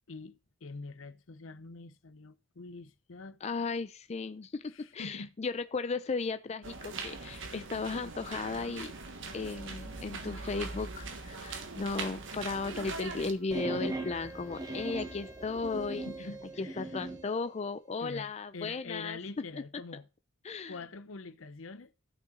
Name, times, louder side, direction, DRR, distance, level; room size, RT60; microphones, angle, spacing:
voice 1, 0.1-3.4 4.7-5.3 7.4-7.5 16.0-16.9 18.0-20.1 20.7-21.9, left 3 dB, 75° left, 0.8 m, -45 dB
voice 2, 3.4-8.9 9.3-16.1 16.6-19.2 19.5-19.6 20.4-20.7, left 4 dB, 35° left, 0.4 m, -35 dB
sound 1, 6.6-13.3, right 4 dB, 65° right, 1.4 m, -41 dB
sound 2, 8.3-16.6, right 1 dB, 85° right, 4.3 m, -63 dB
sound 3, 13.5-17.3, right 2 dB, 20° right, 1.3 m, -39 dB
13.0 x 5.8 x 3.8 m
head